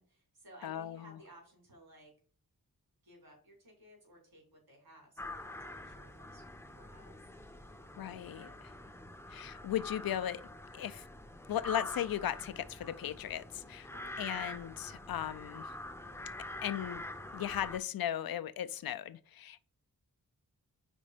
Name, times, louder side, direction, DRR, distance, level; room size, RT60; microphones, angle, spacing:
voice 1, 0.0-2.1 3.0-6.4 6.7-7.2 13.9-14.1, right 1 dB, 80° right, 3.6 m, -58 dB
voice 2, 0.6-1.2 8.0-8.5 9.3-10.4 10.7-11.1 11.5-13.9 14.2-15.7 16.6-17.0 17.3-19.7, left 11 dB, 80° left, 0.5 m, -37 dB
sound 1, 5.2-17.8, left 2 dB, 5° left, 0.5 m, -46 dB
5.1 x 4.3 x 5.0 m
wide cardioid pair, 145°, 36 cm